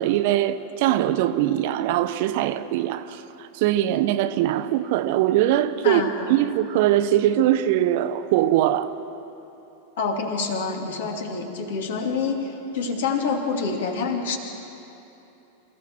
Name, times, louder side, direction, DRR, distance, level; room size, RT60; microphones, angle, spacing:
voice 1, 0.0-6.0 6.3-8.9, right 12 dB, 50° right, 12 dB, 0.9 m, -22 dB
voice 2, 10.0-14.4, left 4 dB, 60° left, 3 dB, 2.7 m, -27 dB
28.0 x 15.0 x 6.3 m, 2.9 s
figure-of-eight pair, 90°, 0 cm